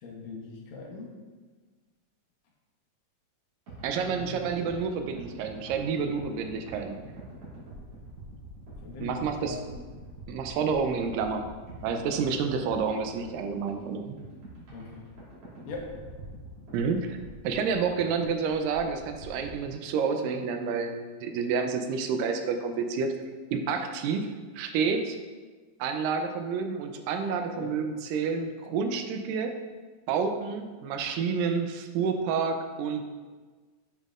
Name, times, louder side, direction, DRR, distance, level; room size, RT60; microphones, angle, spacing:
voice 1, 0.0-1.1 4.1-4.4 8.8-9.8 14.7-15.1 15.6-15.9 27.5-27.8, left 3 dB, 80° left, -2 dB, 2.6 m, -41 dB
sound 1, 3.7-19.7, right 1 dB, 50° right, 2.5 m, -46 dB
voice 2, 3.8-7.0 9.0-9.6 10.3-11.4 11.8-14.0 16.7-17.2 17.4-23.1 23.5-25.2 25.8-29.6 30.1-33.0, right 5 dB, 90° right, 6 dB, 2.2 m, -29 dB
7.5 x 5.3 x 2.4 m, 1.4 s
omnidirectional pair, 3.9 m